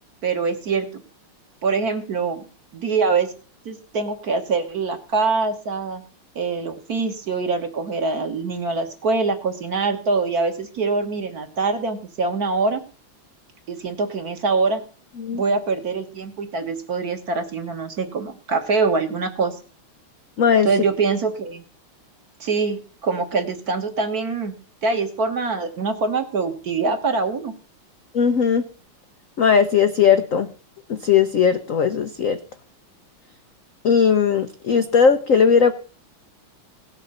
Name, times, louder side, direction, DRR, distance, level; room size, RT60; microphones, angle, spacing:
voice 1, 0.2-0.9 1.6-2.4 2.7-3.3 3.7-6.0 6.4-12.8 13.7-14.8 15.3-19.6 20.7-21.6 22.4-24.5 24.8-27.5, right 4 dB, 50° right, 6 dB, 1.8 m, -24 dB
voice 2, 20.4-20.7 28.1-28.6 29.4-30.5 30.9-32.4 33.8-35.7, left 6 dB, 65° left, 9 dB, 0.8 m, -18 dB
17.5 x 6.7 x 5.5 m, 0.37 s
omnidirectional pair, 2.3 m